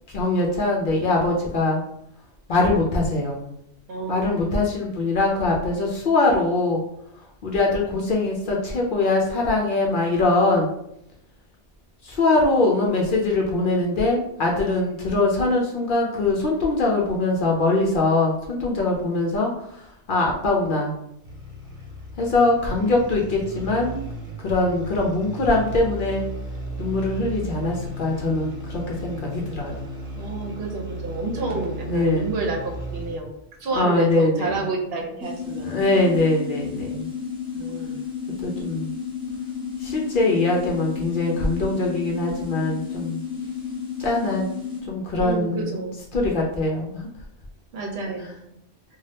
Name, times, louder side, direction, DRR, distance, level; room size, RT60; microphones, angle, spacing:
voice 1, 0.1-1.8 2.5-3.4 4.1-6.8 7.4-10.7 12.0-20.9 22.2-24.0 24.4-26.2 26.8-29.9 31.9-32.3 33.8-34.6 35.6-37.1 38.4-39.0 39.8-43.2 44.0-44.5 44.9-45.8 46.1-47.1, left 2 dB, 60° left, -1 dB, 0.6 m, -22 dB
voice 2, 3.9-4.5 30.1-33.3 33.6-35.8 37.5-38.0 45.2-46.0 47.7-48.5, right 3 dB, 65° right, 1 dB, 0.8 m, -29 dB
sound 1, 21.2-33.3, right 1 dB, 30° right, 1.0 m, -35 dB
sound 2, 35.2-44.8, left 7 dB, 5° right, 0.6 m, -32 dB
2.7 x 2.3 x 3.3 m, 0.76 s
omnidirectional pair, 1.1 m